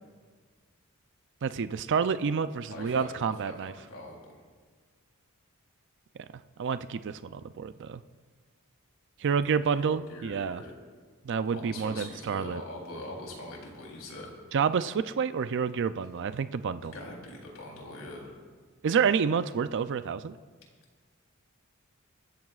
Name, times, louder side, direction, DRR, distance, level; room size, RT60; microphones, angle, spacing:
voice 1, 1.4-3.7 6.6-8.0 9.2-10.6 11.2-12.6 14.5-16.9 18.8-20.4, right 6 dB, 55° right, 13 dB, 0.4 m, -29 dB
voice 2, 2.7-4.2 9.7-10.7 11.5-14.3 16.9-18.3, left 1 dB, 75° left, -1 dB, 3.4 m, -42 dB
24.0 x 14.0 x 2.4 m, 1.5 s
head